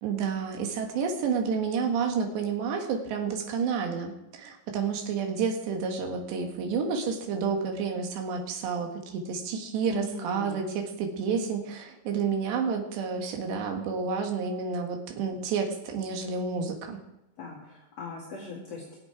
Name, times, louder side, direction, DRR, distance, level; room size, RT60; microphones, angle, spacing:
voice 1, 0.0-17.0, right 5 dB, 65° right, 3 dB, 3.5 m, -30 dB
voice 2, 9.9-10.6 17.4-18.8, left 3 dB, 45° left, -4 dB, 2.3 m, -39 dB
23.0 x 7.9 x 4.8 m, 0.94 s
omnidirectional pair, 5.7 m